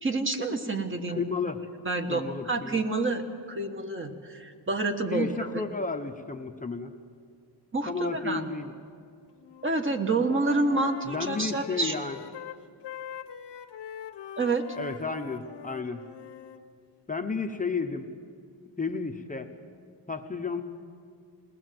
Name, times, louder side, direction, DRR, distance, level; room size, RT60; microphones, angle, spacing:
voice 1, 0.0-1.2 1.8-3.2 3.5-5.6 7.7-8.4 9.6-11.9 14.4-14.6, right 3 dB, 25° right, 5 dB, 1.6 m, -28 dB
voice 2, 1.1-1.6 2.1-2.8 5.1-6.9 7.9-8.7 11.0-12.2 14.7-16.0 17.1-18.1 18.8-19.5 20.1-20.6, left 4 dB, 20° left, 4 dB, 0.9 m, -32 dB
Wind instrument woodwind instrument, 9.4-9.8 10.1-16.6, left 9 dB, 65° left, 1.0 m, -43 dB
21.0 x 19.0 x 7.7 m, 2.2 s
wide cardioid pair, 140°, 44 cm